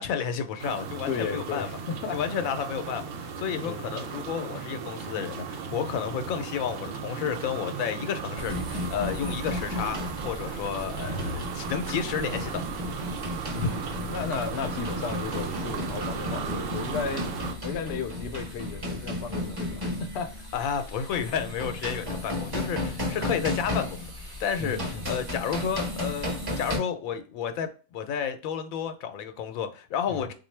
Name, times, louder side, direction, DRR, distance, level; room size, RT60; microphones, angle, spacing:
voice 1, 0.0-1.7 2.1-12.6 13.5-13.8 20.5-30.3, left 7 dB, 85° left, 1.0 m, -31 dB
sound 1, 0.6-17.5, right 6 dB, 75° right, 0.9 m, -36 dB
voice 2, 1.1-2.2 3.6-3.9 13.5-17.3 17.6-20.4 24.6-25.1 30.1-30.3, left 5 dB, 65° left, 0.7 m, -34 dB
sound 2, 8.4-26.8, left 2 dB, 20° right, 0.8 m, -34 dB
3.7 x 2.5 x 3.1 m
omnidirectional pair, 1.4 m